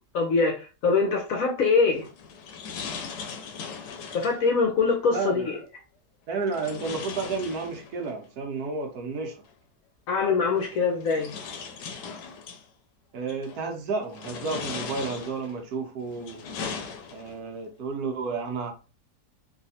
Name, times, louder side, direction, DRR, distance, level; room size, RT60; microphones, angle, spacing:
voice 1, 0.1-2.1 4.1-5.6 10.1-11.3, left 4 dB, 65° left, 1.0 m, -23 dB
sound 1, 1.9-4.5 6.5-8.1 9.5-9.6 10.6-12.6 13.3-13.7 14.1-15.6 16.1-17.5, left 5 dB, 85° left, 1.3 m, -38 dB
voice 2, 5.1-5.5 6.3-9.4 13.1-16.5 17.1-18.7, right 4 dB, 70° right, 1.2 m, -31 dB
3.2 x 2.7 x 2.7 m
omnidirectional pair, 1.8 m